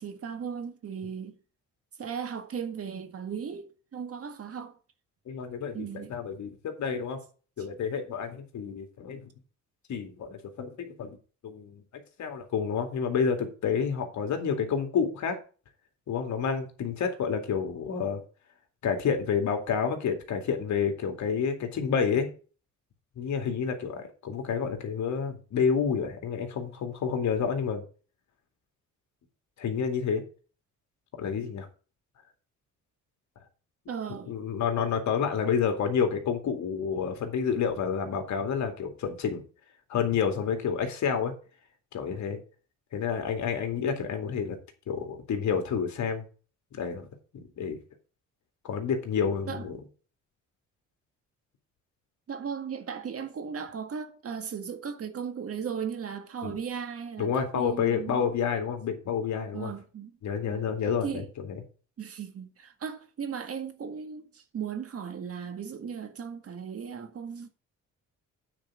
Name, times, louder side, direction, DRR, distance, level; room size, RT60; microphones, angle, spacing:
voice 1, 0.0-1.3 2.0-4.8 5.7-6.2 7.6-7.7 33.9-34.3 49.5-49.7 52.3-58.3 59.5-60.2 60.5-60.7 61.0-61.3 62.0-67.5, right 7 dB, 50° right, 1.8 m, -37 dB
voice 2, 5.3-7.2 7.6-9.3 9.9-11.2 11.4-11.8 12.2-15.4 16.1-18.2 18.8-22.3 23.2-27.8 29.6-30.2 31.2-31.7 34.3-39.4 39.9-41.3 41.9-42.4 42.9-44.6 44.9-46.2 46.7-47.1 47.3-47.8 48.6-49.8 56.4-56.5 57.2-59.7 60.2-61.4, left 6 dB, 70° left, 2.3 m, -29 dB
8.9 x 4.7 x 7.2 m
cardioid pair, 90°, 30 cm